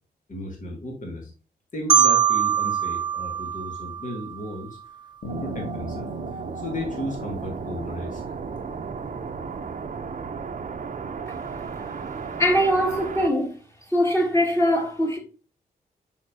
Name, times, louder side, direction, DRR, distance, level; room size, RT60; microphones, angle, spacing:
voice 1, 0.3-1.3 1.7-4.8 5.3-8.4, left 1 dB, 50° left, 2.6 m, -35 dB
Marimba xylophone, 1.9-4.7, right 8 dB, 25° right, 0.4 m, -23 dB
Bass guitar, 5.2-9.7, right 1 dB, 75° left, 2.2 m, -40 dB
sound 1, 5.3-13.3, right 5 dB, 50° right, 0.8 m, -34 dB
voice 2, 12.4-13.5 13.9-15.2, equal, 15° left, 2.4 m, -21 dB
6.4 x 5.7 x 2.8 m
cardioid pair, 55°, 17 cm